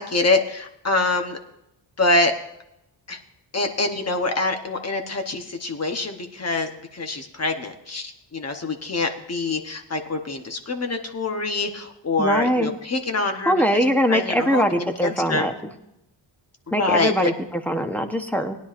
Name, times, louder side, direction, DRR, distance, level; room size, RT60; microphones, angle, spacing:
voice 1, 0.0-1.4 2.0-2.3 3.1-3.2 3.5-13.8 14.1-15.5 16.7-17.3, left 2 dB, 35° left, 5 dB, 0.9 m, -25 dB
voice 2, 12.2-12.8 13.5-15.5 16.7-18.6, equal, 5° left, 5 dB, 0.8 m, -22 dB
20.0 x 10.5 x 2.5 m, 0.84 s
wide cardioid pair, 170°, 46 cm